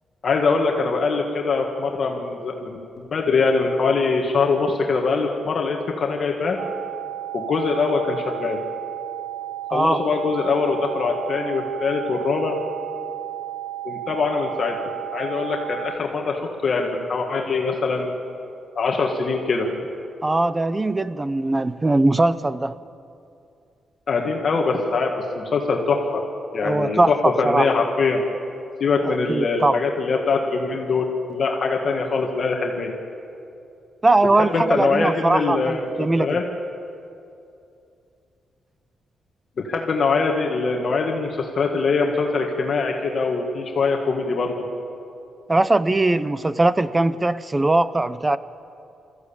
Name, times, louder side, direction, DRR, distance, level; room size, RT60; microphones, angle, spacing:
voice 1, 0.2-6.6 7.3-8.6 9.7-12.6 13.8-14.8 15.1-18.1 18.8-19.7 24.1-26.2 26.5-28.2 28.8-32.9 34.5-36.4 39.6-44.7, left 4 dB, 40° left, 1 dB, 1.8 m, -23 dB
sound 1, 6.6-16.0, right 14 dB, 85° right, 0.6 m, -33 dB
voice 2, 20.2-22.7 26.6-27.7 29.3-29.8 34.0-36.4 45.5-48.4, right 2 dB, 15° right, 15 dB, 0.6 m, -20 dB
25.0 x 14.5 x 8.7 m, 2.6 s
wide cardioid pair, 155°, 0 cm